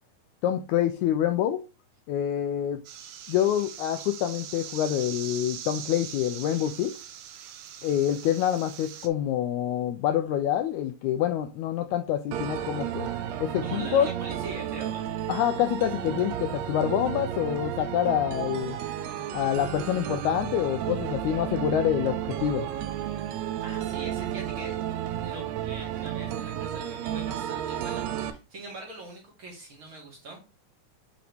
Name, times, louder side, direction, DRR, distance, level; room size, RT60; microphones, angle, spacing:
voice 1, 0.4-1.6 2.1-2.8 3.3-6.9 7.8-13.1 13.4-14.1 15.3-18.8 19.3-22.7, left 10 dB, 85° left, 1.7 m, -26 dB
sound 1, 2.8-9.1, right 9 dB, 75° right, 2.1 m, -41 dB
sound 2, 12.3-28.3, right 10 dB, 90° right, 1.5 m, -32 dB
voice 2, 13.6-15.1 23.6-24.8 25.2-30.4, right 2 dB, 45° right, 2.3 m, -42 dB
7.7 x 4.0 x 3.4 m
omnidirectional pair, 3.8 m